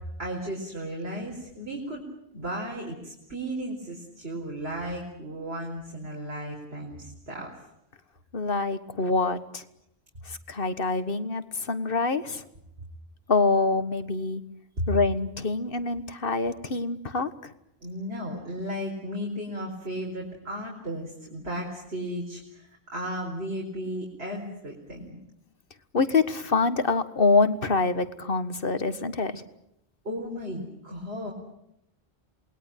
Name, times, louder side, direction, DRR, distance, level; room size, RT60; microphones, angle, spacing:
voice 1, 0.2-2.0 2.3-7.5 17.8-25.2 30.0-31.3, equal, 75° right, -1 dB, 4.7 m, -35 dB
voice 2, 8.3-9.6 10.3-12.4 13.3-14.4 14.9-17.5 25.9-29.4, left 3 dB, 60° left, 12 dB, 1.7 m, -25 dB
28.0 x 20.5 x 9.2 m, 0.81 s
omnidirectional pair, 1.1 m